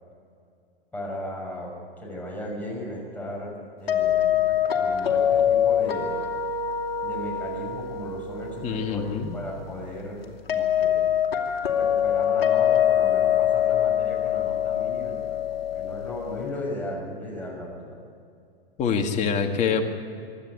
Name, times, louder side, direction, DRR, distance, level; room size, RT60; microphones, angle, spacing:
voice 1, 0.9-6.2 7.0-11.2 11.7-18.0, left 1 dB, 5° left, -2 dB, 6.2 m, -36 dB
sound 1, 3.9-16.7, left 9 dB, 70° left, 2.6 m, -25 dB
voice 2, 8.6-9.4 18.8-19.9, left 6 dB, 25° left, 4 dB, 2.0 m, -25 dB
25.5 x 12.0 x 9.5 m, 2.4 s
hypercardioid pair, 135°, 31 cm